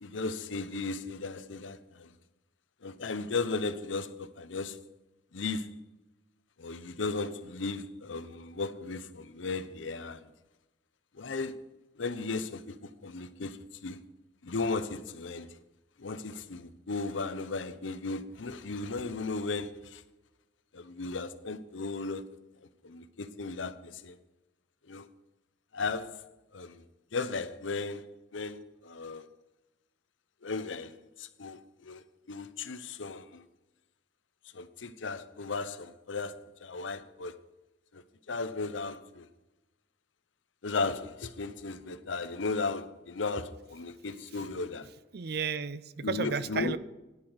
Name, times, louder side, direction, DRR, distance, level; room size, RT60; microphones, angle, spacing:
voice 1, 0.0-2.1 2.8-4.8 5.3-5.8 6.6-10.3 11.1-11.6 12.0-14.0 14.4-15.5 16.0-20.0 20.7-22.3 22.8-24.2 24.9-25.1 25.7-26.3 26.5-26.8 27.1-29.3 30.4-33.5 34.5-37.4 37.9-39.3 40.6-44.9 46.0-46.8, left 3 dB, 85° left, 0.8 m, -36 dB
voice 2, 45.1-46.8, right 5 dB, 55° right, 0.5 m, -33 dB
9.9 x 8.7 x 6.2 m
head